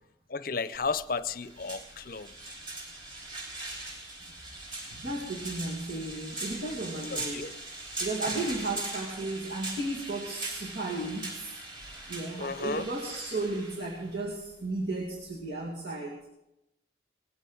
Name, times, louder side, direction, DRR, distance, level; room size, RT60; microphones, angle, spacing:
voice 1, 0.3-2.3 7.1-7.5 12.4-12.8, left 4 dB, 50° left, 13 dB, 0.7 m, -33 dB
sound 1, 0.7-15.4, right 2 dB, 25° right, 3.9 m, -40 dB
voice 2, 4.8-7.6 8.0-11.5 12.1-16.2, right 2 dB, 60° right, -3 dB, 2.3 m, -34 dB
19.0 x 15.0 x 4.0 m, 0.89 s
head